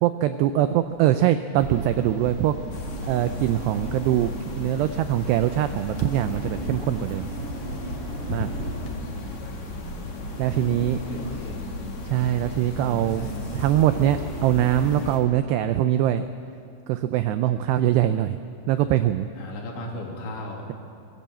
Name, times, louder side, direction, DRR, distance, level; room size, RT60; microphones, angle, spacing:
voice 1, 0.0-2.6 3.0-4.3 4.6-7.3 8.3-8.5 10.4-11.0 12.0-16.3 16.9-18.4 18.7-19.3, right 12 dB, 85° right, 10 dB, 2.4 m, -23 dB
sound 1, 0.6-1.3 1.6-5.7 7.3-7.9 8.2-9.0, left 2 dB, 55° left, 2.1 m, -41 dB
sound 2, 1.6-15.2, right 1 dB, 55° right, 5.5 m, -35 dB
sound 3, 2.7-15.2, left 4 dB, 85° left, 1.2 m, -38 dB
voice 2, 11.0-11.6 12.8-13.5 19.4-20.6, left 2 dB, 70° left, -1 dB, 5.0 m, -36 dB
22.5 x 19.5 x 7.6 m, 2.6 s
omnidirectional pair, 5.5 m